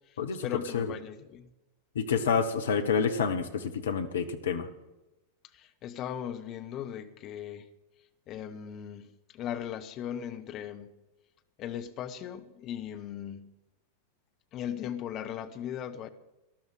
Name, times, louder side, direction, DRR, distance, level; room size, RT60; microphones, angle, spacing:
voice 1, 0.1-1.5 5.5-7.7 8.3-10.9 11.6-13.5 14.5-16.1, left 9 dB, 35° left, 8 dB, 1.4 m, -38 dB
voice 2, 1.9-4.7, left 6 dB, 65° left, 7 dB, 1.3 m, -28 dB
19.0 x 12.5 x 5.0 m, 0.99 s
figure-of-eight pair, 90°, 0 cm